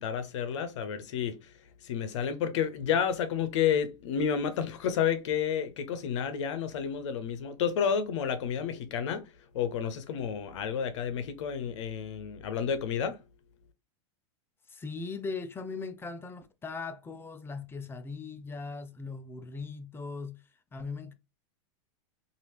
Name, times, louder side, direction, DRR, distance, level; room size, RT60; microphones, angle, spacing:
voice 1, 0.0-1.4 1.8-9.2 9.5-13.2, left 7 dB, 75° left, 0.7 m, -30 dB
voice 2, 14.7-20.4 20.7-21.1, left 4 dB, 15° left, 0.5 m, -39 dB
3.3 x 2.6 x 2.9 m
hypercardioid pair, 115°, 15 cm